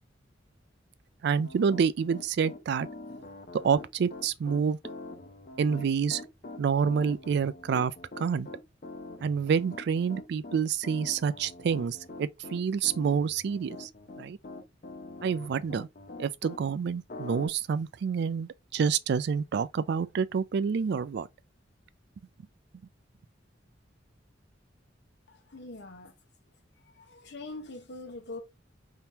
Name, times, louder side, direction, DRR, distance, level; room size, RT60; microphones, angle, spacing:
voice 1, 1.2-2.9 3.6-4.8 5.6-6.2 6.6-7.9 8.2-8.5 9.2-13.9 14.2-14.4 15.2-15.9 16.2-21.3, right 6 dB, 60° right, 0.3 m, -28 dB
Piano, 1.4-16.6 17.1-17.5, left 2 dB, 45° left, 0.6 m, -44 dB
voice 2, 25.3-26.1 26.9-28.4, left 2 dB, 65° left, 0.9 m, -43 dB
3.6 x 2.9 x 2.7 m
head